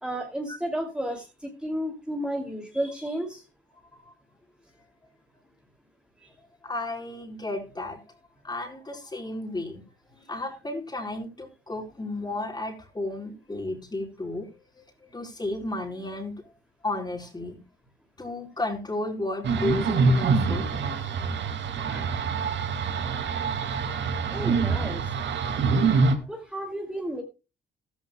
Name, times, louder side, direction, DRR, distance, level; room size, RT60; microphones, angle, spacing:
voice 1, 0.0-3.4 21.0-21.1 21.9-22.1 24.3-25.0 25.7-27.2, right 1 dB, 5° right, 2 dB, 2.7 m, -33 dB
voice 2, 6.6-8.0 8.4-9.8 10.3-14.5 15.1-16.4 16.8-17.6 18.2-20.7 21.0-21.2, left 2 dB, 20° left, 3 dB, 4.5 m, -33 dB
sound 1, 19.4-26.2, right 4 dB, 65° right, 2.3 m, -25 dB
14.5 x 14.0 x 2.3 m, 0.29 s
cardioid pair, 90°, 20 cm